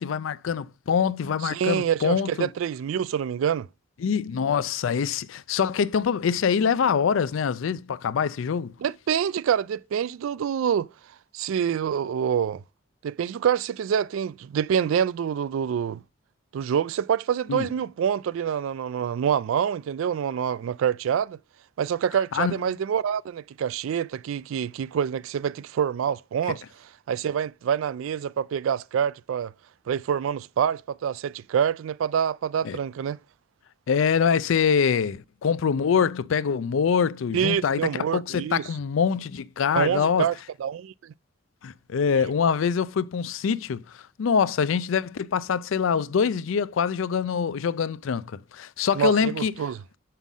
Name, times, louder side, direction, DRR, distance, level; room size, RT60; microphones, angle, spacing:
voice 1, 0.0-2.5 4.0-8.7 17.5-17.7 22.3-22.7 26.5-26.6 32.6-32.8 33.9-40.3 41.6-43.8 44.2-49.5, left 6 dB, 75° left, 0.4 m, -24 dB
voice 2, 1.4-3.7 8.8-10.9 11.3-12.6 13.0-16.0 16.5-21.4 21.8-26.6 27.1-29.5 29.9-33.2 37.3-38.7 39.8-41.1 48.9-49.8, right 8 dB, 75° right, 0.3 m, -26 dB
7.1 x 5.6 x 3.7 m
head